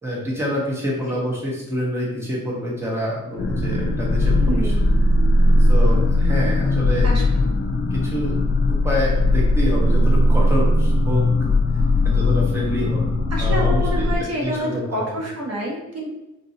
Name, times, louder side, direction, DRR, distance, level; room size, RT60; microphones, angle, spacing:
voice 1, 0.0-4.7 5.6-7.1 7.9-8.3 8.7-11.2 12.0-13.0 13.4-14.1 14.4-14.8, equal, 10° right, -5 dB, 1.0 m, -26 dB
sound 1, 3.4-14.2, left 1 dB, 40° left, 0.4 m, -18 dB
voice 2, 4.4-4.8 7.0-7.2 13.3-16.1, equal, 60° right, -2 dB, 0.9 m, -27 dB
3.9 x 2.8 x 2.7 m, 0.97 s
wide cardioid pair, 130°, 29 cm